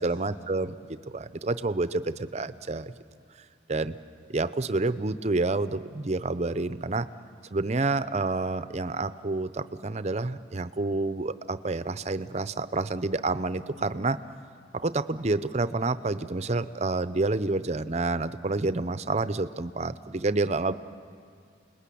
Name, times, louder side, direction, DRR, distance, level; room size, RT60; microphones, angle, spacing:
voice 1, 0.0-2.9 3.7-4.0 4.3-7.1 7.5-14.2 14.7-20.7, right 3 dB, 35° right, 13 dB, 0.7 m, -28 dB
29.0 x 20.5 x 8.5 m, 2.3 s
head